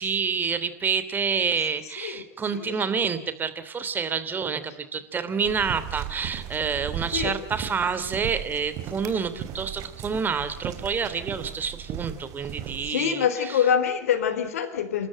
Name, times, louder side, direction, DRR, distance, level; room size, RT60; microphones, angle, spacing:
voice 1, 0.0-13.6, right 6 dB, 25° right, 2.9 m, -28 dB
voice 2, 2.5-2.8 7.1-7.4 12.8-15.1, left 8 dB, 75° left, 3.7 m, -25 dB
sound 1, 5.5-12.9, right 10 dB, 50° right, 3.6 m, -37 dB
29.0 x 13.5 x 9.0 m
hypercardioid pair, 95°, 8 cm